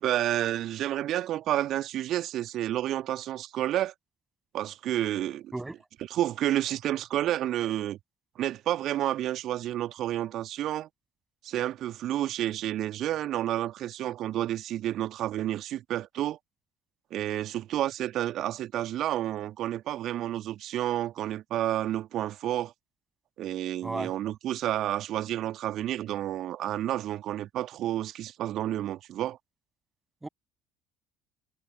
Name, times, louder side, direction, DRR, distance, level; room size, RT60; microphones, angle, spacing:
voice 1, 0.0-3.9 4.5-5.5 6.1-8.0 8.4-10.9 11.4-16.4 17.1-22.7 23.4-29.4, right 13 dB, 50° right, 1.9 m, -30 dB
voice 2, 23.8-24.1 30.2-30.3, right 2 dB, 15° right, 7.9 m, -34 dB
figure-of-eight pair, 55°, 0 cm